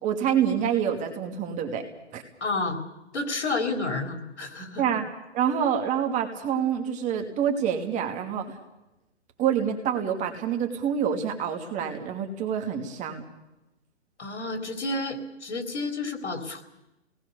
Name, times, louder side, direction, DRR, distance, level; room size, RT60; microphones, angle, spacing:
voice 1, 0.0-1.8 2.1-2.2 4.8-5.0 5.3-8.6 9.4-13.2, right 8 dB, 20° right, 4 dB, 2.6 m, -27 dB
voice 2, 2.4-2.8 3.1-4.8 14.2-16.6, left 3 dB, 75° left, 5 dB, 4.0 m, -30 dB
28.5 x 19.0 x 7.0 m, 0.94 s
hypercardioid pair, 135°, 34 cm